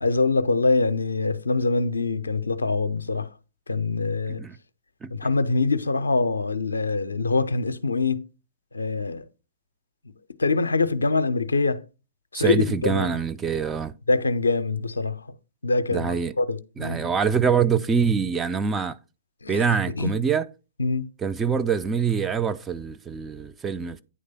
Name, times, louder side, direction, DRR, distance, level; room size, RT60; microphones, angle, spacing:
voice 1, 0.0-3.3 3.7-4.4 5.1-8.3 8.7-9.3 10.4-11.8 12.3-13.2 14.1-15.3 15.6-17.1 19.4-19.7 19.9-20.1 20.8-21.1, left 3 dB, 75° left, 0.5 m, -24 dB
voice 2, 12.3-13.9 15.9-16.3 16.8-19.0 19.5-20.5 21.2-24.0, right 6 dB, 15° right, 0.4 m, -24 dB
9.4 x 3.3 x 5.5 m
figure-of-eight pair, 115°, 0 cm